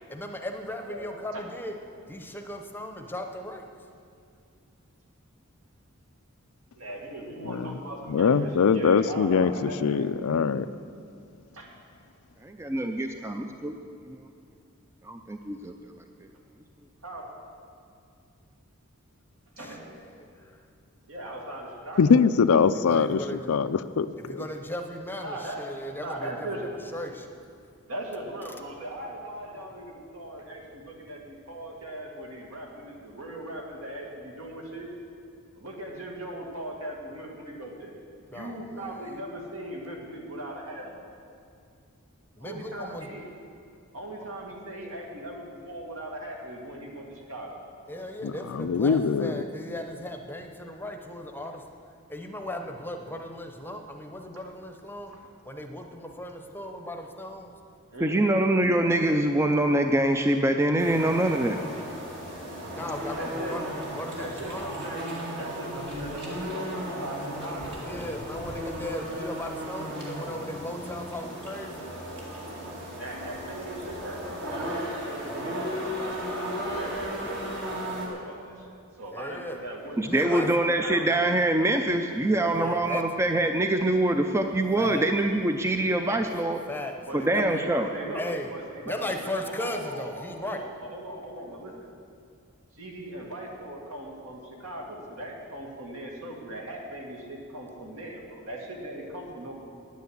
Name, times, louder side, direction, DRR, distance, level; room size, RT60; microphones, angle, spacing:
voice 1, 0.1-1.7 2.1-3.6 19.6-20.6 22.6-23.4 24.2-27.3 38.3-39.0 42.3-43.1 44.1-44.3 47.9-51.6 52.1-55.1 55.4-57.5 62.7-63.6 63.9-64.7 67.8-71.8 79.1-79.6 80.0-80.5 82.5-83.0 84.8-85.1 86.7-87.6 88.1-88.5 88.8-90.7, left 1 dB, 10° left, 5 dB, 0.8 m, -37 dB
voice 2, 6.8-10.0 11.5-11.7 17.0-17.3 19.6-19.8 21.1-22.2 25.2-26.6 27.9-34.9 35.6-37.9 38.3-41.0 42.4-43.2 43.9-47.5 55.1-55.2 57.9-58.4 61.7-61.8 63.1-63.6 64.2-68.0 72.5-72.6 73.0-78.7 79.0-80.0 80.2-81.2 87.1-88.2 88.5-91.7 92.8-99.5, right 1 dB, 70° right, -1 dB, 2.2 m, -39 dB
voice 3, 7.4-7.8 8.1-10.7 22.0-23.2 23.5-24.4 48.2-49.4, left 5 dB, 80° left, 13 dB, 0.4 m, -23 dB
voice 4, 12.4-13.8 14.1-14.2 15.0-15.7 58.0-61.6 80.0-86.6 87.1-87.9, right 1 dB, 15° right, 5 dB, 0.4 m, -24 dB
sound 1, 60.8-78.1, equal, 55° right, 2.3 m, -35 dB
9.9 x 9.4 x 8.1 m, 2.4 s
head